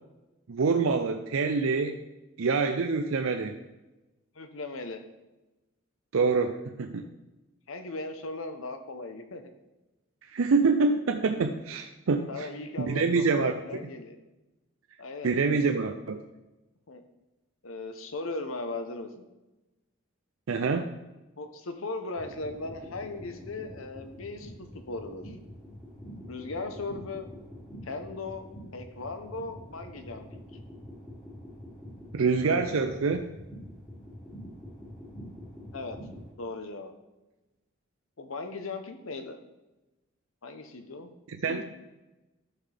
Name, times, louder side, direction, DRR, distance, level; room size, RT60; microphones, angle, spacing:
voice 1, 0.5-2.0 2.4-3.6 6.1-7.1 10.3-12.5 12.8-13.9 15.2-16.2 20.5-20.9 32.1-33.3 41.3-41.6, right 4 dB, 90° right, 6 dB, 0.5 m, -26 dB
voice 2, 4.3-5.0 7.7-9.5 11.7-11.8 12.3-14.2 15.0-15.4 16.9-17.0 17.6-19.2 21.4-25.4 26.3-27.3 27.8-30.4 35.7-36.0 36.4-36.9 38.2-39.4 40.4-41.1 41.4-41.6, left 3 dB, 90° left, 7 dB, 0.9 m, -38 dB
pulsar-sounds, 22.1-36.3, equal, 20° left, 2.6 m, -46 dB
11.5 x 5.8 x 3.4 m, 1.0 s
head